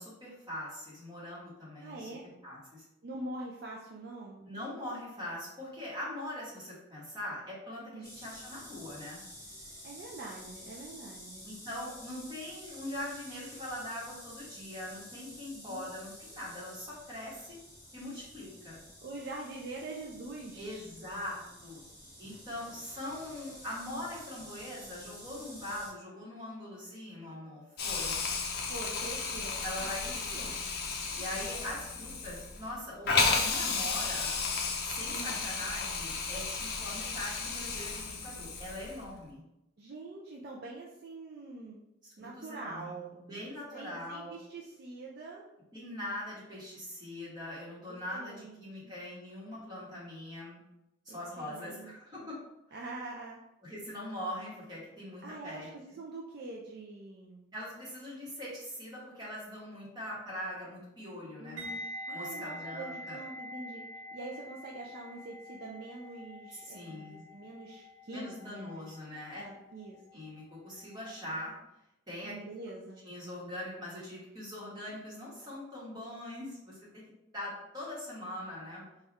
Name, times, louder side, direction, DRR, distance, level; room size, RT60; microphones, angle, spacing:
voice 1, 0.0-2.1 2.4-2.8 4.4-9.2 11.4-17.6 17.9-18.8 20.6-21.8 22.2-28.1 29.6-30.5 31.1-34.3 34.8-39.4 42.2-44.3 45.7-50.6 51.0-52.4 52.7-52.8 53.6-55.7 57.5-61.6 62.1-63.2 66.5-67.3 68.1-69.4 70.1-71.5 72.1-72.3 73.0-77.0 77.3-78.8, left 1 dB, 20° right, -7 dB, 1.3 m, -42 dB
voice 2, 1.8-2.3 3.0-4.5 7.9-8.1 9.8-11.5 15.5-15.8 17.3-17.4 19.0-20.9 22.3-22.4 28.6-30.6 35.1-35.4 39.8-41.8 42.2-45.4 47.9-48.9 51.1-52.3 52.7-53.4 55.2-57.5 61.4-63.8 64.1-68.8 69.4-70.2 72.2-73.0, right 2 dB, 50° right, -2 dB, 0.4 m, -45 dB
sound 1, 8.0-25.9, equal, 15° left, 1.1 m, -50 dB
Hiss, 27.8-39.0, left 4 dB, 50° left, 0.5 m, -33 dB
sound 2, 61.6-70.5 70.8-71.1, equal, 65° right, 0.9 m, -45 dB
3.5 x 2.3 x 4.1 m, 0.90 s
head